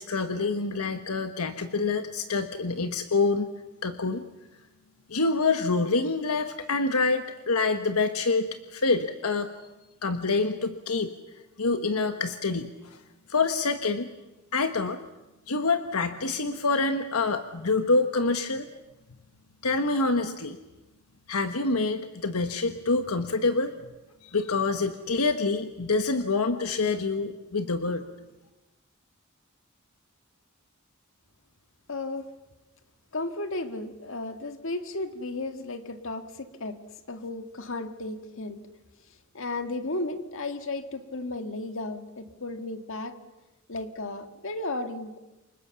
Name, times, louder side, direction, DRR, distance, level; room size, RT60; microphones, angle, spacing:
voice 1, 0.0-3.5 3.8-4.2 5.1-9.5 10.0-11.1 11.6-12.7 13.3-14.1 14.5-15.0 15.5-18.7 19.6-20.6 21.3-23.7 24.2-28.0, left 3 dB, 85° left, 8 dB, 1.3 m, -26 dB
voice 2, 31.9-32.3 33.1-36.8 37.1-38.6 39.3-43.2 43.7-45.2, left 2 dB, 60° left, 8 dB, 1.9 m, -34 dB
28.5 x 24.5 x 7.1 m, 1.0 s
head